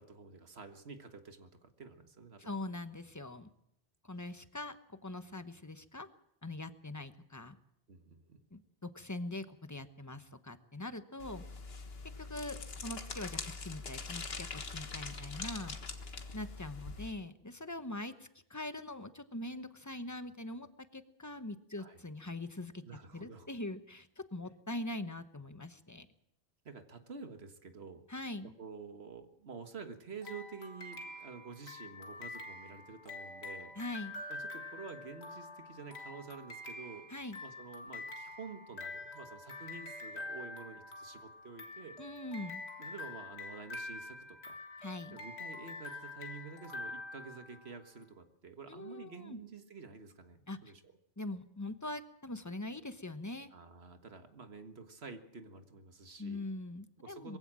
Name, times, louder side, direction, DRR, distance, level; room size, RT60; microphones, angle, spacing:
voice 1, 0.0-2.5 7.9-8.4 21.8-22.0 22.8-23.5 26.7-28.0 28.4-33.7 34.3-37.1 37.4-42.0 42.8-44.6 45.1-50.8 53.5-56.4 57.0-57.4, right 5 dB, 80° right, 7 dB, 1.8 m, -49 dB
voice 2, 2.4-3.5 4.0-6.1 6.4-7.6 8.5-11.4 12.2-15.8 16.3-20.7 20.9-22.8 23.1-26.1 28.1-28.5 33.8-34.2 37.1-37.4 42.0-42.6 44.8-45.2 48.7-49.4 50.5-50.6 51.2-53.5 56.2-57.4, left 2 dB, 15° left, 10 dB, 1.0 m, -42 dB
sound 1, 11.2-17.1, left 4 dB, 70° left, 1.8 m, -43 dB
sound 2, 30.2-47.9, left 2 dB, 85° left, 2.2 m, -46 dB
22.0 x 15.5 x 7.6 m, 0.77 s
omnidirectional pair, 1.1 m